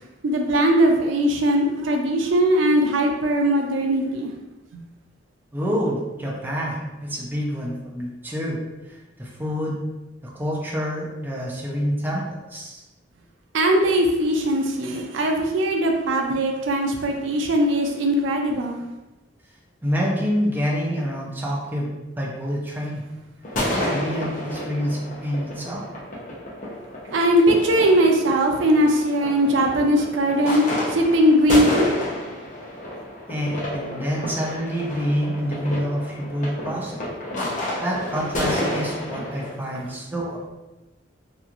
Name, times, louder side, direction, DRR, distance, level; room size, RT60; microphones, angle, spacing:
voice 1, 0.2-4.3 13.5-18.8 27.1-31.9, equal, 75° right, 2 dB, 0.4 m, -20 dB
voice 2, 5.5-8.6 8.9-9.8 10.2-12.8 19.8-23.0 23.6-25.9 33.3-36.9 37.8-40.5, equal, 10° right, -4 dB, 0.5 m, -27 dB
sound 1, 23.4-39.5, left 1 dB, 40° left, 0.7 m, -30 dB
2.9 x 2.3 x 2.4 m, 1.0 s
head